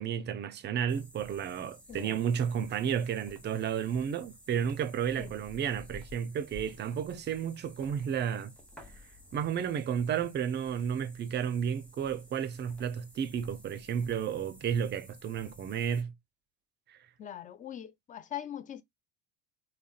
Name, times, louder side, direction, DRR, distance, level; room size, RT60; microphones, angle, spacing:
voice 1, 0.0-8.5 9.3-16.1 16.9-17.0, right 8 dB, 30° right, 0.5 m, -32 dB
sound 1, 0.9-16.0, left 1 dB, 5° left, 0.9 m, -54 dB
voice 2, 1.9-2.2 5.2-5.3 17.2-18.8, left 10 dB, 25° left, 0.3 m, -41 dB
3.7 x 2.2 x 2.3 m
hypercardioid pair, 75°, 34 cm